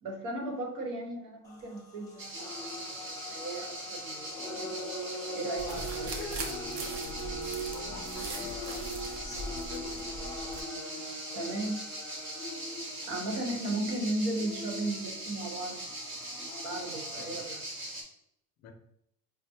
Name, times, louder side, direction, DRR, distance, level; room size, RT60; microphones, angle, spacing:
voice 1, 0.0-2.6 3.1-4.7 5.3-6.3 11.3-11.8 13.1-15.8 16.6-17.6, right 1 dB, 65° right, 2 dB, 1.0 m, -36 dB
sound 1, 1.4-17.4, equal, 10° left, 0.6 m, -42 dB
sound 2, 2.2-18.0, right 1 dB, 35° right, 0.7 m, -41 dB
sound 3, 5.6-10.6, right 2 dB, 85° right, 0.8 m, -41 dB
voice 2, 7.7-8.9 9.7-10.0 17.2-17.5 18.6-18.7, left 6 dB, 50° left, 3 dB, 0.6 m, -47 dB
5.4 x 2.1 x 2.7 m, 0.74 s
cardioid pair, 170°, 34 cm